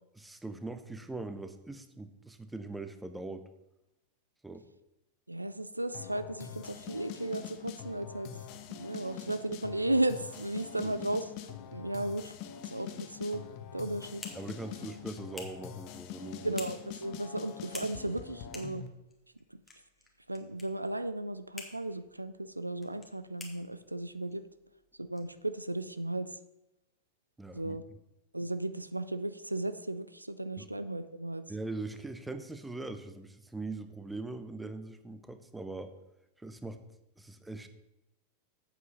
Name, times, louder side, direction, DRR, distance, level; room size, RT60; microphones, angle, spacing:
voice 1, 0.1-3.4 4.4-4.6 10.8-11.0 14.3-16.5 27.4-27.8 30.6-30.7 31.5-35.9 36.4-36.8 37.2-37.7, right 2 dB, 5° right, 9 dB, 0.8 m, -41 dB
voice 2, 5.3-8.3 8.7-11.3 11.7-12.3 12.7-13.4 13.7-14.2 16.4-18.8 19.5-19.6 20.3-24.5 25.1-26.3 27.5-27.8 28.3-31.4, right 1 dB, 85° right, 12 dB, 0.4 m, -35 dB
sound 1, 5.9-18.9, left 9 dB, 45° left, 0.8 m, -44 dB
sound 2, 13.7-26.0, left 2 dB, 10° left, 1.8 m, -52 dB
8.2 x 7.5 x 5.3 m, 0.90 s
figure-of-eight pair, 90°, 0 cm